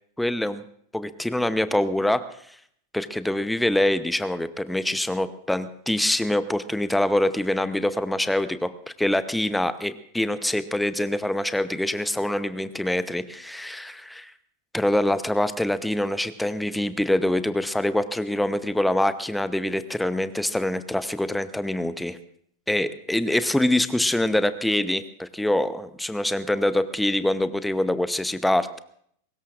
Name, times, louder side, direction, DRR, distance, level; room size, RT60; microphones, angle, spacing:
voice 1, 0.2-0.6 0.9-2.2 2.9-8.7 9.0-14.2 14.7-22.2 22.7-28.8, left 1 dB, 5° left, 13 dB, 0.8 m, -25 dB
23.0 x 20.0 x 2.5 m, 0.64 s
figure-of-eight pair, 90°, 0 cm